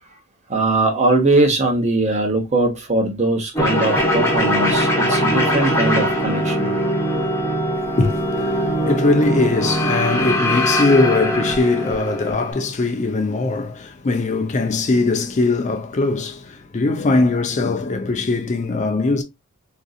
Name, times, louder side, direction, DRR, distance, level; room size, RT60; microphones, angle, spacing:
voice 1, 0.5-6.7, right 2 dB, 30° right, 0.9 m, -20 dB
sound 1, 3.5-12.5, equal, 10° left, 0.8 m, -21 dB
voice 2, 7.8-19.2, left 3 dB, 35° left, 0.4 m, -21 dB
3.8 x 2.6 x 2.3 m
head